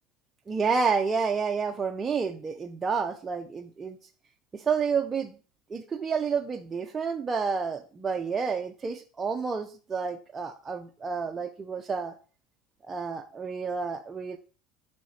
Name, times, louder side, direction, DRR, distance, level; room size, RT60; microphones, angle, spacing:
voice 1, 0.5-4.0 4.5-5.3 5.7-12.2 12.8-14.4, right 5 dB, 20° right, 5 dB, 0.4 m, -30 dB
6.3 x 4.8 x 4.0 m, 0.39 s
cardioid pair, 150°, 0 cm